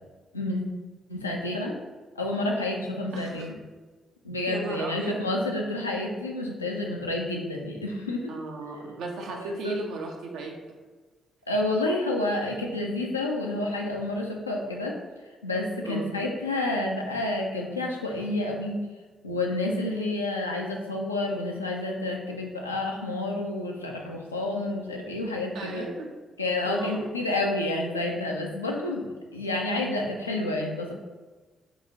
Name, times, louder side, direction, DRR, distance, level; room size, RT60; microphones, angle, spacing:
voice 1, 1.1-1.8 2.2-3.5 4.2-8.3 9.3-9.8 11.5-15.0 15.4-18.8 19.2-25.9 26.4-30.9, left 2 dB, 85° left, -1 dB, 0.3 m, -29 dB
voice 2, 3.1-3.5 4.5-5.2 8.3-10.6 15.8-16.1 25.5-26.1 26.6-27.0, right 3 dB, 65° right, 1 dB, 0.5 m, -35 dB
2.8 x 2.3 x 3.8 m, 1.3 s
figure-of-eight pair, 40°, 0 cm